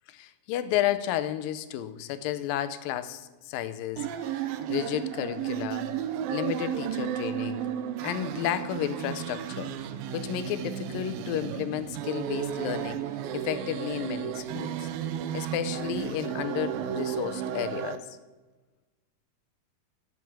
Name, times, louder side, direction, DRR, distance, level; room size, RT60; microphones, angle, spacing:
voice 1, 0.1-4.1 4.4-5.9 6.3-7.7 8.0-9.7 10.1-13.0 13.3-14.9 15.3-18.1, left 11 dB, 90° left, 13 dB, 2.5 m, -32 dB
sound 1, 4.0-18.0, right 10 dB, 90° right, 2.5 m, -33 dB
12.0 x 6.2 x 8.4 m, 1.2 s
omnidirectional pair, 4.0 m